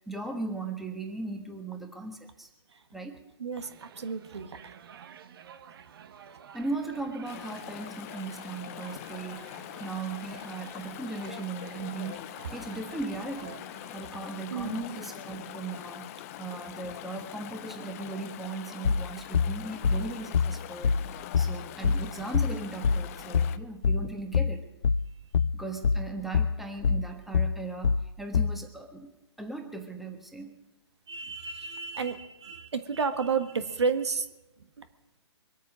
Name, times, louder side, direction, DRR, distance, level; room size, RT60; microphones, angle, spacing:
voice 1, 0.1-2.5 2.9-3.2 6.5-9.5 9.8-13.6 13.9-24.6 25.5-30.6, right 3 dB, ahead, 4 dB, 1.3 m, -38 dB
voice 2, 3.4-4.7 14.5-14.8 23.5-23.6 31.1-34.3 34.8-34.9, right 5 dB, 70° right, 10 dB, 1.4 m, -31 dB
sound 1, 3.6-14.0, right 7 dB, 55° right, 1.0 m, -51 dB
Chatter / Stream, 7.3-23.6, left 13 dB, 30° left, 0.6 m, -43 dB
sound 2, 18.8-28.6, left 6 dB, 75° left, 0.5 m, -26 dB
23.5 x 9.1 x 6.2 m, 0.96 s
figure-of-eight pair, 135°, 15 cm